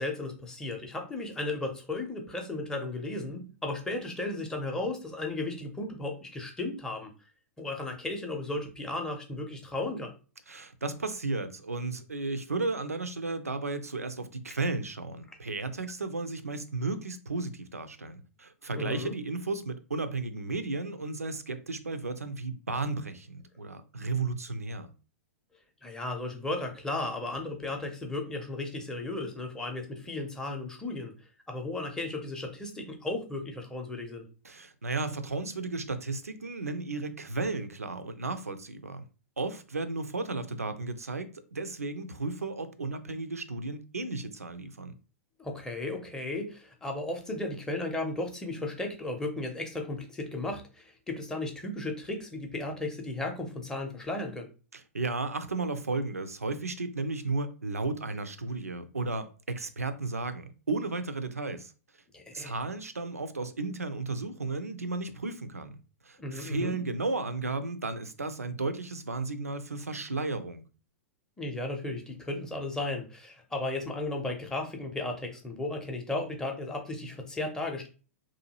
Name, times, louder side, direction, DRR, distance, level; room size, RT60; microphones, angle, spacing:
voice 1, 0.0-7.1 7.6-10.1 18.7-19.1 25.8-31.1 31.5-34.2 45.4-54.5 62.1-62.6 66.2-66.8 71.4-77.9, left 2 dB, 5° left, 0.6 m, -35 dB
voice 2, 10.5-24.9 34.4-39.0 39.4-45.0 54.7-61.7 62.3-65.7 66.0-70.6, right 3 dB, 80° right, 0.4 m, -34 dB
2.7 x 2.3 x 2.8 m
figure-of-eight pair, 105°, 8 cm